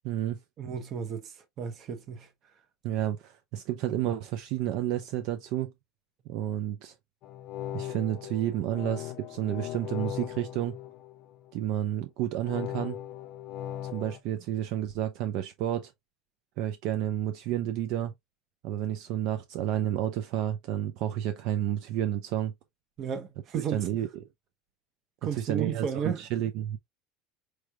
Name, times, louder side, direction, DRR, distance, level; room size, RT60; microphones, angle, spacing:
voice 1, 0.0-0.4 2.8-5.7 6.3-6.9 7.7-10.7 11.5-13.0 13.9-15.9 16.6-18.1 18.6-22.5 23.5-24.1 25.3-26.8, right 11 dB, 55° right, 0.5 m, -30 dB
voice 2, 0.6-2.3 23.0-23.9 25.2-26.3, right 7 dB, 35° right, 0.9 m, -33 dB
sound 1, 7.2-11.6 12.4-14.2, left 12 dB, 45° left, 0.5 m, -39 dB
4.6 x 3.2 x 2.4 m
cardioid pair, 165°, 0 cm